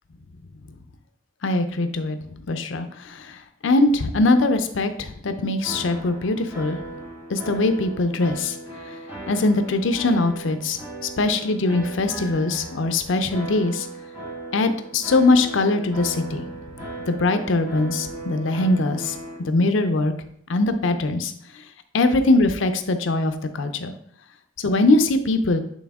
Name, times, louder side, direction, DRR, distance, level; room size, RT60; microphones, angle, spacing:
voice 1, 1.4-2.2 2.5-3.4 3.6-6.8 7.3-8.6 8.9-9.0 9.3-10.8 11.2-13.9 14.5-16.5 17.1-19.2 19.4-20.1 20.5-21.3 21.9-23.9 24.6-25.6, left 2 dB, 75° left, 9 dB, 0.6 m, -21 dB
sound 1, 5.6-19.4, right 2 dB, 10° right, 2.1 m, -37 dB
8.3 x 3.5 x 3.5 m, 0.68 s
head